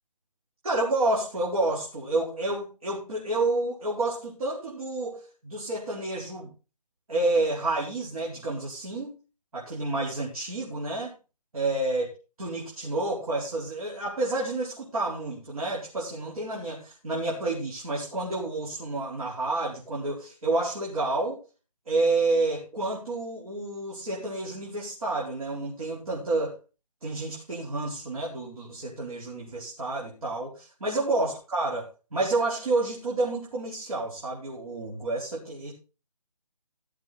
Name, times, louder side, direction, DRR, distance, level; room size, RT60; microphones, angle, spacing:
voice 1, 0.6-6.5 7.1-9.1 9.5-11.1 11.5-21.4 21.9-26.5 27.0-35.7, right 2 dB, 60° right, -4 dB, 4.6 m, -29 dB
16.0 x 7.4 x 4.2 m, 0.32 s
figure-of-eight pair, 150°, 21 cm